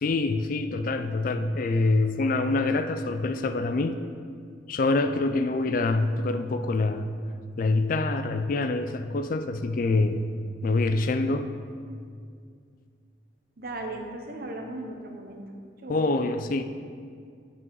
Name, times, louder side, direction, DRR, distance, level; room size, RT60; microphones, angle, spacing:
voice 1, 0.0-4.0 4.7-7.1 7.6-10.2 10.6-11.5 15.9-16.6, left 3 dB, 45° left, 9 dB, 0.3 m, -25 dB
voice 2, 13.6-15.4 15.8-16.0, right 1 dB, 50° right, 2 dB, 0.9 m, -36 dB
8.3 x 5.4 x 4.7 m, 2.2 s
head